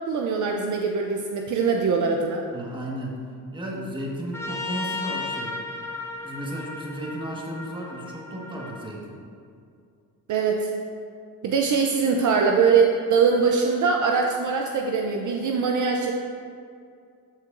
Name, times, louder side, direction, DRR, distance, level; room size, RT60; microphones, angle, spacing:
voice 1, 0.1-2.4 10.3-10.7 11.4-16.1, right 5 dB, 55° right, 2 dB, 0.6 m, -22 dB
voice 2, 2.5-3.2 3.5-5.6 6.2-9.2, equal, 15° right, -3 dB, 1.5 m, -34 dB
Trumpet, 4.3-8.9, left 3 dB, 5° left, 0.8 m, -35 dB
14.0 x 4.6 x 2.5 m, 2.3 s
cardioid pair, 105°, 37 cm